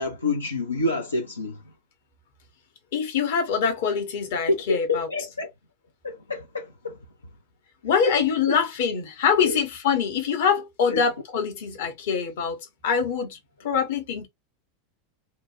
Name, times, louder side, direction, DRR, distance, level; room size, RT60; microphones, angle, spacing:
voice 1, 0.0-1.6 4.5-5.5 6.0-7.0 8.1-8.2 8.5-8.6 9.4-9.6 10.9-11.0, left 2 dB, 80° left, 0.5 m, -27 dB
voice 2, 2.9-5.1 7.8-12.6 12.8-13.4 13.6-14.3, left 6 dB, 55° left, 0.9 m, -24 dB
2.9 x 2.1 x 2.9 m
figure-of-eight pair, 85°, 0 cm